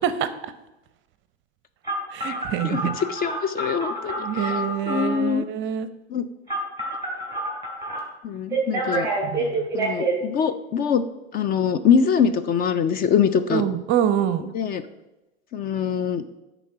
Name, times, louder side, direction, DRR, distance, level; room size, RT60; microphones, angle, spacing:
voice 1, 0.0-0.5 2.1-3.0 4.2-5.9 9.2-9.7 13.5-14.5, right 9 dB, 35° right, 13 dB, 0.6 m, -26 dB
Telephone, 1.8-5.2 6.5-8.0 8.5-10.1, right 2 dB, 10° right, 3.1 m, -28 dB
voice 2, 2.6-5.4 6.1-6.3 8.2-9.1 9.4-9.5 9.7-11.0 11.3-13.6 14.5-14.8 15.5-16.2, left 7 dB, 25° left, 11 dB, 0.4 m, -23 dB
10.0 x 4.0 x 5.8 m, 0.99 s
hypercardioid pair, 100°, 34 cm